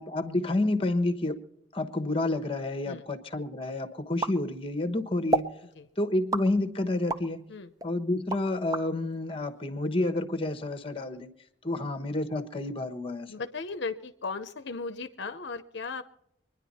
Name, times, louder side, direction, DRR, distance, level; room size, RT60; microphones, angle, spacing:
voice 1, 0.0-1.4 1.7-5.5 6.0-7.4 7.8-11.3 11.6-13.3, left 2 dB, 30° left, 7 dB, 1.1 m, -29 dB
sound 1, 4.2-4.9 5.3-5.6 6.3-7.3 7.8-8.9, right 2 dB, 20° right, 0.7 m, -30 dB
voice 2, 13.3-16.0, left 4 dB, 65° left, 9 dB, 0.7 m, -36 dB
24.5 x 10.5 x 4.2 m, 0.79 s
head